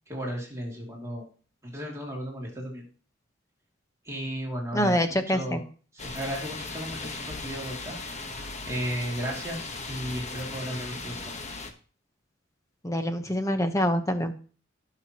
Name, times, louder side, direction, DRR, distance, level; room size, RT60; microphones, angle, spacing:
voice 1, 0.1-1.2 1.6-2.8 4.0-5.6 6.0-7.9 8.6-11.3, equal, 15° right, -3 dB, 2.6 m, -34 dB
voice 2, 4.7-5.6 12.8-14.3, equal, 15° left, 8 dB, 1.0 m, -25 dB
sound 1, 6.0-11.7, left 3 dB, 35° left, 1.2 m, -37 dB
17.5 x 6.0 x 3.0 m, 0.40 s
head